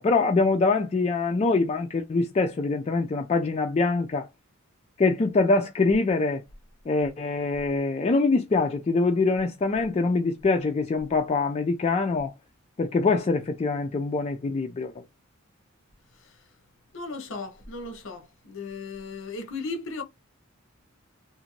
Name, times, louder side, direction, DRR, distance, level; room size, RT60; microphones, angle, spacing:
voice 1, 0.0-4.3 5.0-6.4 6.9-12.3 12.8-14.9, left 3 dB, 30° left, 0.3 m, -24 dB
voice 2, 16.9-20.0, left 3 dB, 60° left, 0.7 m, -36 dB
2.5 x 2.5 x 2.9 m
head